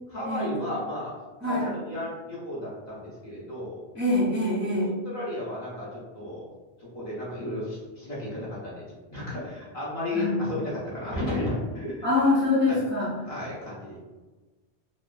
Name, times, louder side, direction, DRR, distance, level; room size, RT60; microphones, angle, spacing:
voice 1, 0.1-1.1 1.4-3.8 5.0-6.5 6.9-8.8 9.1-12.0 12.6-12.8 13.2-14.0, left 1 dB, 45° left, -8 dB, 1.0 m, -33 dB
voice 2, 1.4-1.7 3.9-4.9 10.1-10.3 12.0-13.1, left 2 dB, 15° right, -9 dB, 0.5 m, -24 dB
3.0 x 2.0 x 2.3 m, 1.2 s
omnidirectional pair, 1.1 m